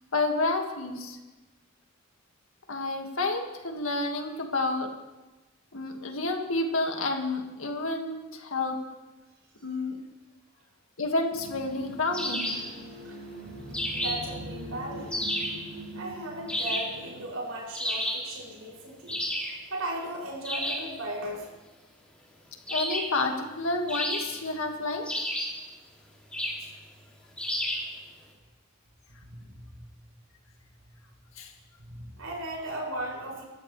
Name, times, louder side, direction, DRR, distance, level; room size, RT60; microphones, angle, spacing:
voice 1, 0.1-1.2 2.7-4.9 5.7-8.8 9.6-10.0 11.0-12.6 22.7-25.1 31.4-31.5, left 2 dB, 75° left, 3 dB, 2.1 m, -30 dB
sound 1, 11.3-17.2, right 1 dB, 50° right, 3.3 m, -42 dB
sound 2, 12.1-12.7 13.7-14.3 15.1-15.6 16.5-17.0 17.7-18.3 19.1-19.6 20.4-20.9 22.7-23.2 23.9-24.5 25.0-25.6 26.3-26.7 27.4-27.9, equal, 5° left, 2.7 m, -31 dB
voice 2, 13.9-15.2 15.9-21.5 29.2-29.8 31.8-33.4, right 1 dB, 85° right, -3 dB, 6.9 m, -37 dB
26.5 x 13.5 x 3.4 m, 1.1 s
head